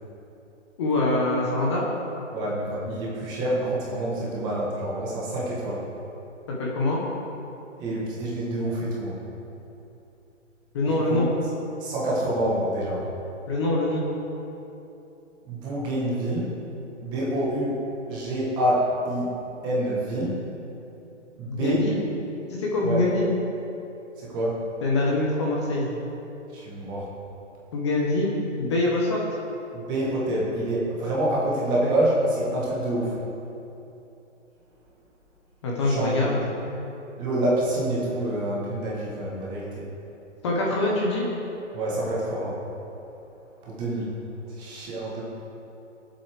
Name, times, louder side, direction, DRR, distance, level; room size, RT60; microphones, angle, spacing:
voice 1, 0.8-1.8 6.5-7.0 10.7-11.3 13.5-14.0 21.4-22.0 22.5-23.3 24.8-26.0 27.7-29.2 31.8-31.9 35.6-36.4 40.4-41.2, left 2 dB, 25° left, -3 dB, 1.0 m, -24 dB
voice 2, 2.3-5.8 7.8-9.2 11.1-11.3 11.8-13.0 15.5-16.6 17.0-17.8 18.1-19.3 19.6-20.4 21.4-21.8 22.8-23.0 24.2-24.6 26.5-27.1 29.7-33.2 35.8-36.4 37.2-39.8 41.7-42.6 43.6-44.2 44.5-45.2, right 1 dB, 10° right, -5 dB, 1.2 m, -27 dB
18.5 x 7.7 x 3.4 m, 3.0 s
hypercardioid pair, 165°, 38 cm